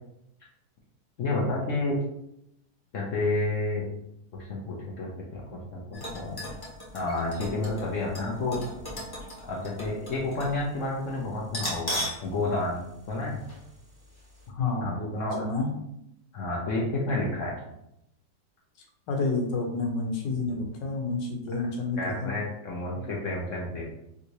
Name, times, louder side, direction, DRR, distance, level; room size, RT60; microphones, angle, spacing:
voice 1, 1.2-2.0 2.9-3.9 4.3-6.4 6.9-8.6 9.5-12.8 13.1-13.4 14.8-15.4 16.3-17.6 22.0-23.8, left 2 dB, 65° left, -4 dB, 0.8 m, -30 dB
sound 1, 5.9-10.6 10.9-11.0 11.5-12.3 12.6-12.7 13.5-13.7 14.0-14.1, equal, 25° left, 0.5 m, -37 dB
voice 2, 14.5-15.7 19.1-22.3 22.9-23.1, left 3 dB, 90° left, 1 dB, 1.5 m, -29 dB
3.5 x 2.6 x 2.9 m, 0.82 s
omnidirectional pair, 1.9 m